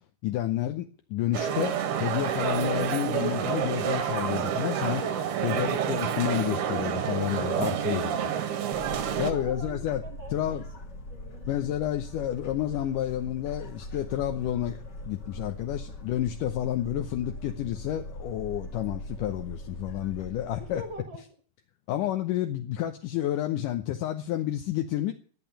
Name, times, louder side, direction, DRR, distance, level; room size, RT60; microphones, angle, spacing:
voice 1, 0.2-1.7 2.0-8.3 9.2-10.0 10.3-10.6 11.5-20.8 21.9-25.1, left 12 dB, 70° left, 6 dB, 2.0 m, -30 dB
sound 1, 1.3-9.3, right 8 dB, 75° right, 3.4 m, -29 dB
voice 2, 7.8-10.7 11.1-11.5 20.6-21.2, right 1 dB, 60° right, 5 dB, 1.2 m, -42 dB
sound 2, 8.7-21.0, left 1 dB, 40° left, 1.6 m, -41 dB
14.0 x 9.1 x 8.8 m, 0.44 s
omnidirectional pair, 4.6 m